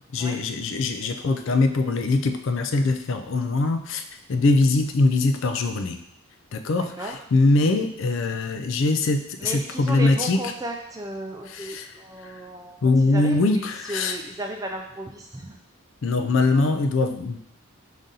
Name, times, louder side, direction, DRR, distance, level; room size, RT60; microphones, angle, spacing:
voice 1, 0.1-4.0 4.3-6.0 6.5-10.4 11.5-11.9 12.8-14.2 16.0-17.4, left 3 dB, 55° left, 8 dB, 0.4 m, -22 dB
voice 2, 6.7-7.2 9.4-12.8 13.0-15.6, right 1 dB, 15° right, 2 dB, 0.3 m, -35 dB
5.0 x 2.7 x 3.8 m, 0.77 s
head